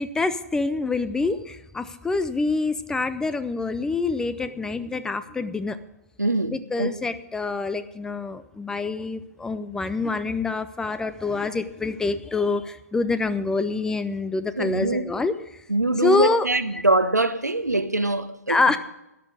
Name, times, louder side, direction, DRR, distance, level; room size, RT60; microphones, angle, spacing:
voice 1, 0.0-5.8 6.4-15.3 16.0-16.8 18.5-18.8, left 3 dB, 5° left, 0.5 m, -26 dB
voice 2, 6.2-7.0 14.6-15.1 15.7-18.6, right 2 dB, 85° right, 1.1 m, -23 dB
13.5 x 10.5 x 4.9 m
figure-of-eight pair, 120°, 9 cm